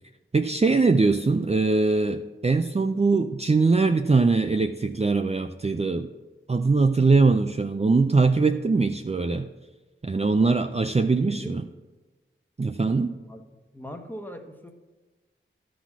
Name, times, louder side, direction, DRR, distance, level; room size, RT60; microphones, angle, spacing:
voice 1, 0.3-6.1 6.5-9.5 10.0-11.6 12.6-13.1, right 3 dB, 30° right, 6 dB, 0.4 m, -22 dB
voice 2, 10.3-11.7 13.2-13.4 13.7-14.7, equal, 10° left, 4 dB, 1.1 m, -41 dB
11.5 x 4.1 x 6.0 m, 1.2 s
wide cardioid pair, 45°, 21 cm